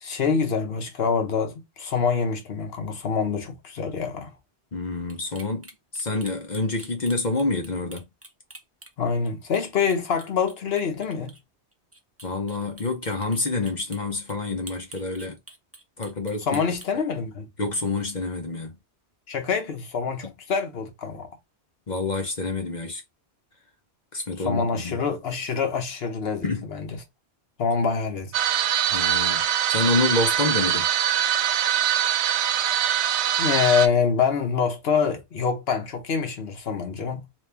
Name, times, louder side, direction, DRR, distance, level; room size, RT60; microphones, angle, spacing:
voice 1, 0.0-4.3 9.0-11.3 16.4-17.5 19.3-21.3 24.4-27.0 27.6-28.3 32.7-32.9 33.4-37.3, left 6 dB, 65° left, 1.2 m, -26 dB
voice 2, 4.7-8.0 12.2-15.4 16.0-16.6 17.6-18.8 20.2-20.3 21.9-23.0 24.1-25.0 26.4-26.7 28.9-29.4 29.7-30.9, left 3 dB, 45° left, 0.9 m, -27 dB
sound 1, 5.1-9.3 9.5-9.6 9.9-11.4 11.7-14.0 14.3-14.4 14.7-16.9, right 2 dB, 15° right, 0.6 m, -45 dB
sound 2, 28.3-33.9, right 10 dB, 80° right, 0.9 m, -23 dB
3.1 x 3.1 x 3.3 m
omnidirectional pair, 1.1 m